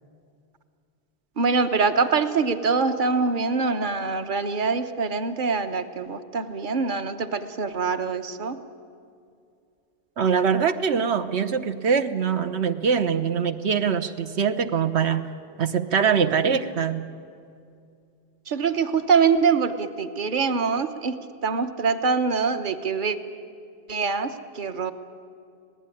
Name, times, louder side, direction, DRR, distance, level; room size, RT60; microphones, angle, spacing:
voice 1, 1.4-8.6 18.5-21.2 21.4-23.2 23.9-24.9, right 5 dB, 50° right, 9 dB, 1.2 m, -24 dB
voice 2, 10.2-15.3 15.6-17.1, right 6 dB, 85° right, 9 dB, 1.2 m, -23 dB
26.0 x 18.0 x 9.9 m, 2.4 s
omnidirectional pair, 1.1 m